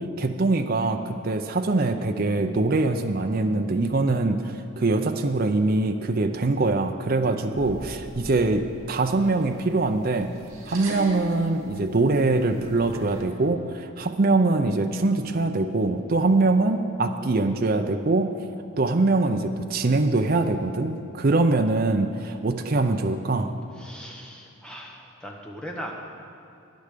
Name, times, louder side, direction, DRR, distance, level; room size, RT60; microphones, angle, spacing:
voice 1, 0.2-10.3 10.7-18.3 18.8-23.5, right 2 dB, 45° right, 6 dB, 0.5 m, -23 dB
sound 1, 7.5-13.2, right 1 dB, 80° right, 2.7 m, -41 dB
voice 2, 23.8-25.9, equal, 5° left, -1 dB, 1.3 m, -39 dB
12.0 x 9.5 x 6.7 m, 2.5 s
head